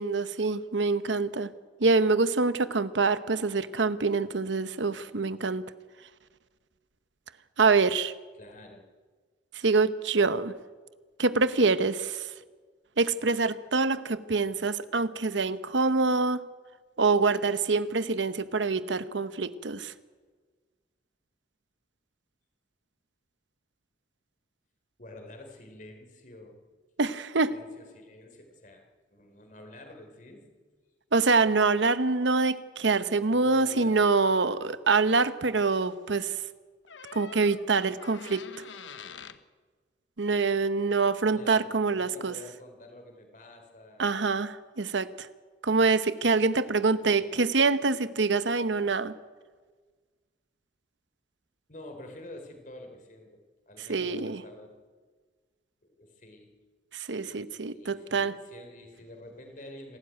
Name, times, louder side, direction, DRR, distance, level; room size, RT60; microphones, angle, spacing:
voice 1, 0.0-1.5 1.8-5.6 7.6-8.1 9.5-10.5 11.2-12.3 13.0-16.4 17.0-19.9 27.0-27.5 31.1-36.4 37.1-38.6 40.2-42.3 44.0-45.3 45.6-49.1 53.9-54.4 56.9-58.4, right 4 dB, 85° right, 13 dB, 0.9 m, -25 dB
voice 2, 8.4-8.8 25.0-26.6 27.4-28.8 29.1-30.5 33.3-34.0 41.3-44.1 46.6-47.5 51.7-53.4 53.7-54.8 55.8-56.5 57.2-60.0, left 1 dB, 45° left, 4 dB, 4.0 m, -48 dB
sound 1, 36.9-39.4 41.5-41.7, left 6 dB, 90° left, 1.1 m, -46 dB
27.5 x 13.0 x 9.3 m, 1.5 s
head